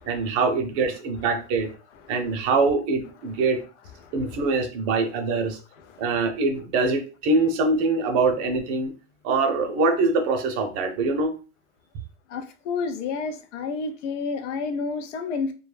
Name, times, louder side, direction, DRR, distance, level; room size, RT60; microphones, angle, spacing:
voice 1, 0.0-1.7 2.1-3.6 4.1-5.6 6.0-8.9 9.2-11.4, right 3 dB, 40° right, 0.6 m, -23 dB
voice 2, 12.3-15.5, left 4 dB, 80° left, 0.6 m, -30 dB
2.2 x 2.1 x 3.2 m
supercardioid pair, 135°, 36 cm